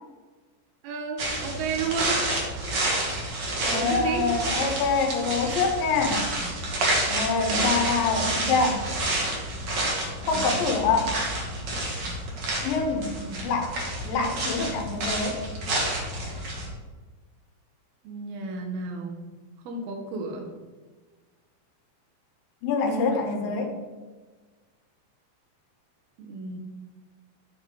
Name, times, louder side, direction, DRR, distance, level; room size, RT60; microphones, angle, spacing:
voice 1, 0.8-2.2 3.6-4.3 10.2-10.5 13.1-13.5 18.0-19.2 19.6-20.5 22.8-23.7 26.2-26.6, right 5 dB, 80° right, 3 dB, 2.9 m, -33 dB
sound 1, 1.2-16.7, right 1 dB, 55° right, 1.7 m, -29 dB
voice 2, 3.7-6.3 7.1-8.9 10.2-11.1 12.6-13.2 13.4-13.8 14.1-15.4 22.6-23.8, left 4 dB, 80° left, 4 dB, 2.3 m, -25 dB
8.9 x 6.1 x 3.7 m, 1.3 s
omnidirectional pair, 4.4 m